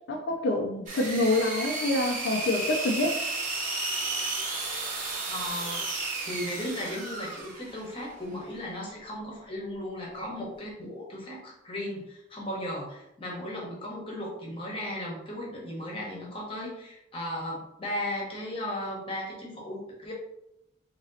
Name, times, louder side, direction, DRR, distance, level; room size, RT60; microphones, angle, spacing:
voice 1, 0.1-3.2, left 2 dB, 60° left, 1 dB, 0.4 m, -26 dB
sound 1, 0.9-7.9, right 3 dB, 40° right, 1.0 m, -33 dB
voice 2, 5.3-5.9 6.2-20.1, left 1 dB, 25° left, -3 dB, 1.0 m, -36 dB
2.9 x 2.8 x 4.0 m, 0.83 s
head